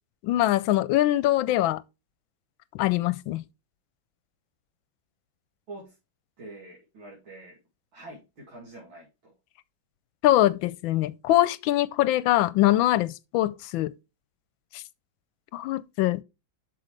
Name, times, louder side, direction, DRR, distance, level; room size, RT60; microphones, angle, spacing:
voice 1, 0.2-1.8 2.7-3.4 10.2-13.9 14.7-14.8 15.5-16.2, left 15 dB, 85° left, 1.3 m, -23 dB
voice 2, 6.4-7.6 7.9-9.3, right 2 dB, 90° right, 3.2 m, -45 dB
7.8 x 6.3 x 3.2 m
omnidirectional pair, 2.1 m